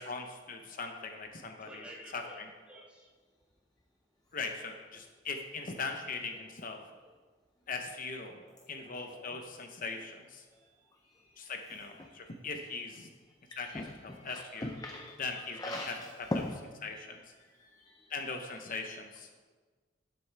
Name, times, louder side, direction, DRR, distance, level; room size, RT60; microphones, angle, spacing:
voice 1, 0.0-1.9 2.1-2.5 4.3-6.8 7.7-8.4 8.7-10.4 11.4-13.1 13.6-13.7 14.0-14.7 15.2-15.9 16.4-16.5 16.8-17.2 18.1-19.3, left 4 dB, 45° left, 4 dB, 0.8 m, -40 dB
voice 2, 1.6-3.1 11.2-11.3 17.1-17.6 17.9-18.6 19.1-19.4, equal, 5° right, -3 dB, 1.7 m, -54 dB
voice 3, 13.5-15.2 15.6-16.6 17.6-18.0, left 1 dB, 20° left, 2 dB, 0.6 m, -39 dB
12.5 x 7.8 x 3.4 m, 1.4 s
head